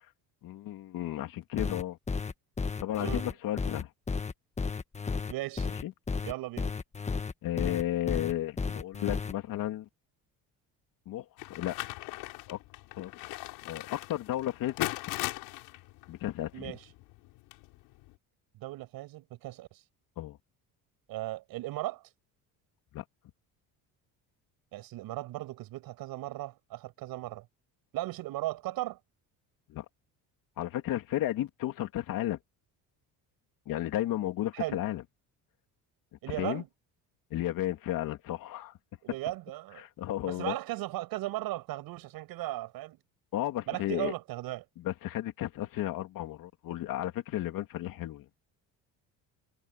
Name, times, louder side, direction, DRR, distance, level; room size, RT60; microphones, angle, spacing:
voice 1, 0.4-2.0 2.8-3.9 5.8-5.9 7.4-9.9 11.1-11.8 12.5-12.6 13.0-13.1 13.7-14.9 16.1-16.8 20.2-20.4 22.9-23.0 29.7-29.8 30.6-32.4 33.7-35.0 36.3-36.6 37.3-38.7 39.8-40.6 43.3-44.1 44.8-48.2, left 13 dB, 65° left, 3.1 m, -33 dB
sound 1, 1.6-9.3, left 4 dB, 20° left, 1.4 m, -33 dB
voice 2, 5.3-5.7 6.2-6.7 16.5-16.8 18.5-19.8 21.1-22.0 24.7-27.4 27.9-29.0 34.5-34.8 36.2-36.7 39.0-39.8 40.2-43.0 43.7-44.6, right 16 dB, 75° right, 6.8 m, -37 dB
sound 2, 11.4-18.1, left 20 dB, 90° left, 5.3 m, -40 dB
cardioid pair, 120°, 36 cm